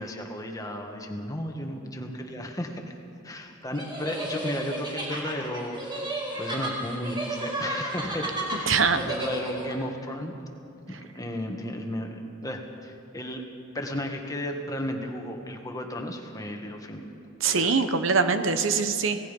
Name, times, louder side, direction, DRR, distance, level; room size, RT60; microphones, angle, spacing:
voice 1, 0.0-2.8 3.2-6.1 6.4-10.3 10.9-13.5 13.7-17.0 17.5-17.8, left 1 dB, 15° left, 3 dB, 1.8 m, -34 dB
sound 1, 3.7-9.7, right 1 dB, 25° right, 4.8 m, -33 dB
voice 2, 8.7-9.0 17.4-19.2, right 5 dB, 70° right, 9 dB, 1.1 m, -23 dB
27.0 x 18.0 x 5.4 m, 2.5 s
head